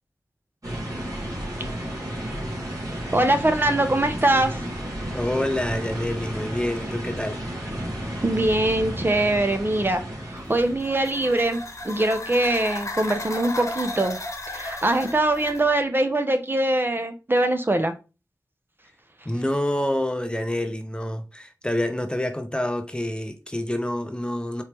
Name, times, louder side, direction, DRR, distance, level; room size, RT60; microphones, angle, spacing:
sound 1, 0.6-11.8, right 1 dB, 55° right, 2.4 m, -32 dB
voice 1, 3.1-4.6 8.2-10.0 10.3-14.2 14.5-17.9, right 1 dB, 30° right, 0.6 m, -22 dB
voice 2, 5.1-7.4 19.3-24.6, left 1 dB, 15° left, 0.6 m, -27 dB
sound 2, 10.4-15.7, left 2 dB, 50° left, 1.1 m, -35 dB
4.4 x 3.0 x 3.4 m
wide cardioid pair, 70°, 7 cm